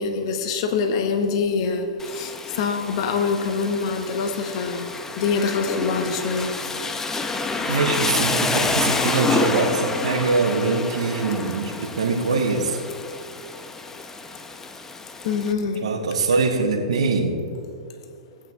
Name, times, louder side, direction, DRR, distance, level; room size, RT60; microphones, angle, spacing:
voice 1, 0.0-6.7 7.7-7.8 15.2-15.8, left 5 dB, 55° left, 6 dB, 1.0 m, -25 dB
Rain, 2.0-15.5, left 3 dB, 10° left, 0.6 m, -28 dB
voice 2, 7.7-11.7 12.0-12.7 15.8-17.3, right 4 dB, 75° right, -1 dB, 1.3 m, -23 dB
17.5 x 8.9 x 2.4 m, 2.6 s
hypercardioid pair, 115°, 3 cm